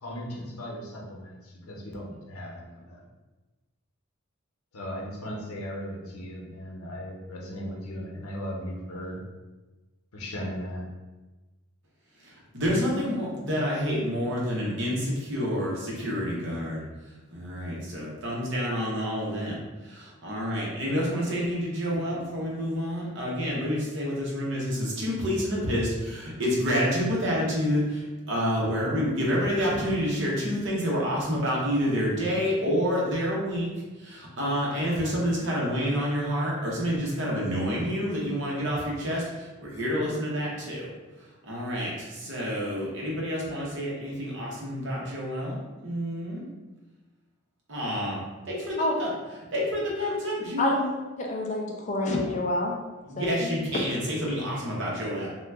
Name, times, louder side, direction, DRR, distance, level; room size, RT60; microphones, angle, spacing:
voice 1, 0.0-3.0 4.7-9.2 10.1-10.8, equal, 80° left, -2 dB, 0.7 m, -37 dB
voice 2, 12.5-16.8 17.3-19.6 19.8-33.7 34.0-40.9 41.5-46.5 47.7-48.2 48.4-49.1 49.5-50.9 53.1-55.3, equal, 55° right, -4 dB, 0.9 m, -28 dB
voice 3, 51.2-52.7 53.2-53.5, left 1 dB, 35° left, -1 dB, 0.4 m, -27 dB
2.8 x 2.2 x 3.4 m, 1.2 s
head